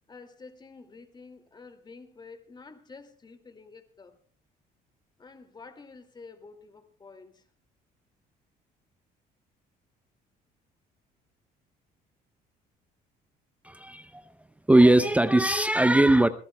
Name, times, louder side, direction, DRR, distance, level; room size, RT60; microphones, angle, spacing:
voice 1, 0.1-4.2 5.2-7.4, left 4 dB, 25° left, 2.3 m, -49 dB
voice 2, 13.6-14.3 14.7-16.3, right 1 dB, 10° right, 0.6 m, -20 dB
26.0 x 16.0 x 2.2 m
cardioid pair, 110°, 17 cm